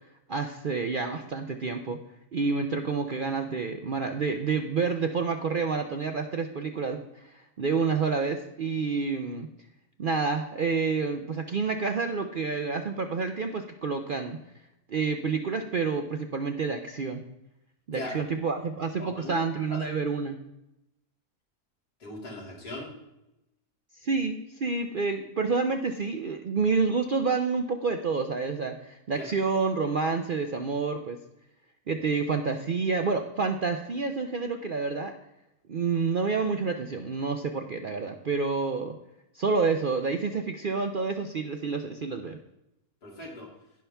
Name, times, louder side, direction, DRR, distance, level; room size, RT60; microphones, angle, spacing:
voice 1, 0.3-2.0 2.3-9.5 10.0-14.4 14.9-17.2 17.9-20.4 24.0-31.2 31.9-35.2 35.7-38.9 39.3-42.4, right 4 dB, 60° right, 6 dB, 0.5 m, -28 dB
voice 2, 17.9-18.2 19.0-19.4 19.7-19.8 22.0-22.9 29.2-29.3 43.0-43.5, left 1 dB, 85° left, -3 dB, 3.1 m, -39 dB
17.0 x 5.7 x 3.4 m, 0.88 s
omnidirectional pair, 1.6 m